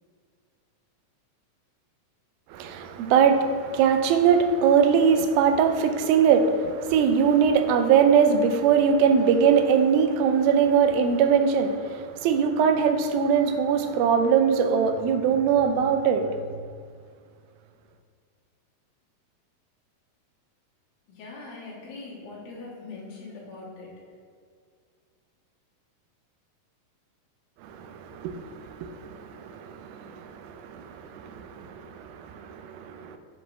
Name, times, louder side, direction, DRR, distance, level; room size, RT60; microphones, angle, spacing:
voice 1, 2.5-16.3 27.6-33.2, right 7 dB, 85° right, 8 dB, 2.3 m, -22 dB
voice 2, 21.1-23.9, left 3 dB, 90° left, -6 dB, 3.4 m, -41 dB
8.5 x 4.7 x 3.1 m, 2.1 s
omnidirectional pair, 4.2 m